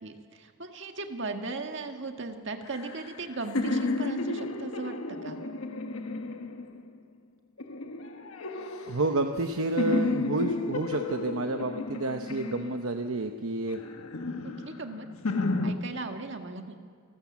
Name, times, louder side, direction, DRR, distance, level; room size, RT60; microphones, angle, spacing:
voice 1, 0.0-5.4 14.4-15.1 15.6-16.8, right 3 dB, 60° right, 5 dB, 1.7 m, -37 dB
sound 1, 2.7-7.0 7.6-9.5 9.8-13.1 13.7-15.7, left 2 dB, 85° left, 1.3 m, -32 dB
voice 2, 8.9-13.8, right 2 dB, 75° right, 5 dB, 0.9 m, -30 dB
28.5 x 13.5 x 7.2 m, 2.2 s
head